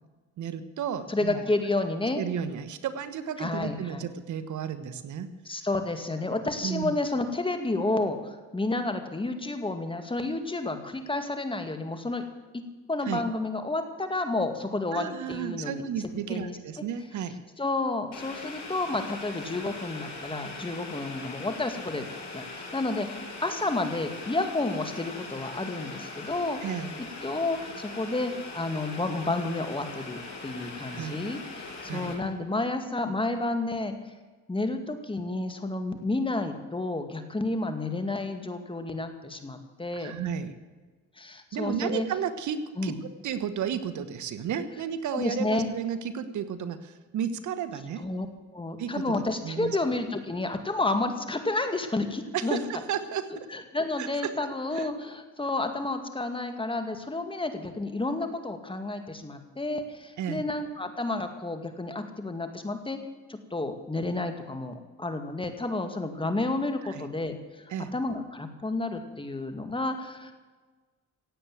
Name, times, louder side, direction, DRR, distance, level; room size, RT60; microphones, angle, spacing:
voice 1, 0.4-1.5 2.2-5.6 6.6-6.9 13.0-13.2 14.9-17.4 26.6-26.9 30.9-31.2 31.9-32.1 40.0-40.5 41.5-48.0 48.8-49.8 52.3-53.5 54.0-54.4 54.7-54.9 60.2-60.4 66.8-67.1 67.7-67.9, right 8 dB, 70° right, 11 dB, 1.3 m, -33 dB
voice 2, 1.1-2.2 3.4-4.0 5.5-12.2 12.9-15.8 16.3-16.6 17.6-22.1 22.3-26.6 27.2-34.0 34.5-40.1 41.2-42.1 42.8-43.0 45.1-45.7 48.0-48.3 48.5-52.6 53.3-63.0 63.3-67.6 67.9-70.3, left 2 dB, 15° left, 7 dB, 2.0 m, -30 dB
Boiling, 18.1-32.1, left 3 dB, 65° left, 6.3 m, -41 dB
16.5 x 8.5 x 9.1 m, 1.3 s
cardioid pair, 90°, 30 cm